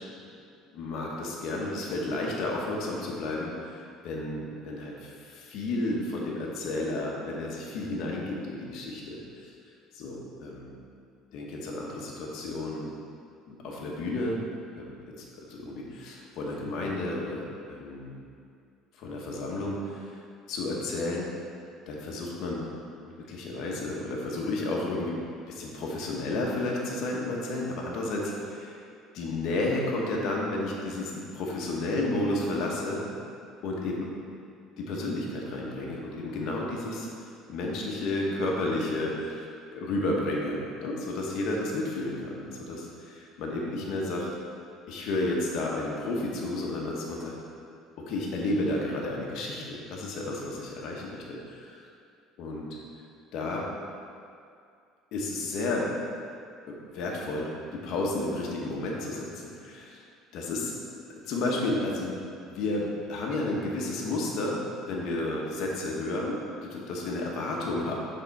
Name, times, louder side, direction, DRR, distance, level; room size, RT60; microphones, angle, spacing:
voice 1, 0.7-3.7 4.0-9.2 9.9-10.8 11.3-12.9 13.5-14.4 14.8-14.9 15.5-18.2 19.0-20.1 20.5-21.3 21.9-22.6 23.0-25.2 25.5-28.8 29.1-33.0 33.6-34.1 34.8-37.1 37.5-39.4 39.7-44.3 44.9-47.3 48.0-51.8 52.4-52.7 53.3-53.7 55.1-55.9 56.7-59.3 59.6-60.0 60.3-60.7 61.3-62.2 62.5-67.9, left 2 dB, 60° left, -2 dB, 1.0 m, -32 dB
6.6 x 3.7 x 4.1 m, 2.4 s
cardioid pair, 155°, 0 cm